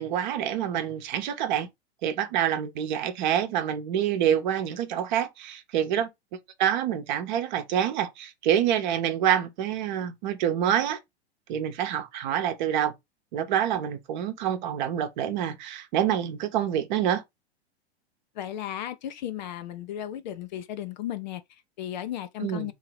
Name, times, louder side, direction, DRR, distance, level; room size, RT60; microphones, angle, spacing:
voice 1, 0.0-1.7 2.0-6.1 6.6-11.0 11.5-12.9 13.3-17.2 22.4-22.7, right 10 dB, 45° right, 0.9 m, -27 dB
voice 2, 18.3-22.7, left 11 dB, 45° left, 0.5 m, -35 dB
3.8 x 2.8 x 4.4 m
figure-of-eight pair, 95°, 33 cm